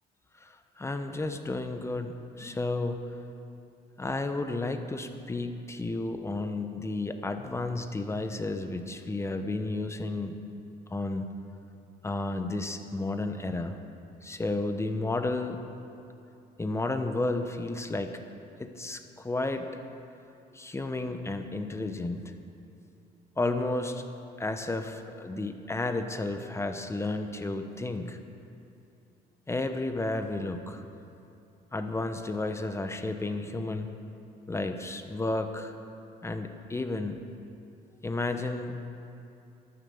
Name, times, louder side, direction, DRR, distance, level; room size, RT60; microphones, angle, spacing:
voice 1, 0.4-3.0 4.0-10.4 10.9-11.3 12.0-13.8 14.2-15.6 16.6-18.1 18.6-19.7 20.5-22.3 23.4-24.0 24.4-28.2 29.5-30.8 31.7-33.9 34.5-35.7 36.2-37.2 38.0-38.9, left 2 dB, 15° left, 7 dB, 0.9 m, -32 dB
13.0 x 10.0 x 7.1 m, 2.7 s
cardioid pair, 110°, 17 cm